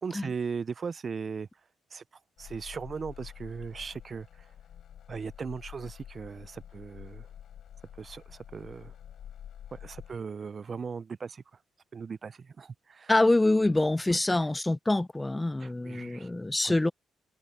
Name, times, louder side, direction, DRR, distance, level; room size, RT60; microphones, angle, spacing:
voice 1, 0.0-1.5 1.9-2.0 2.4-4.3 5.1-7.3 8.0-8.9 9.7-11.4 11.9-13.1 14.3-14.4 15.6-16.3 16.6-16.7, right 5 dB, 40° right, 0.4 m, -38 dB
sound 1, 2.4-10.2, left 10 dB, 65° left, 5.9 m, -48 dB
voice 2, 13.1-16.9, left 2 dB, 15° left, 0.6 m, -25 dB
cardioid pair, 100°, 0 cm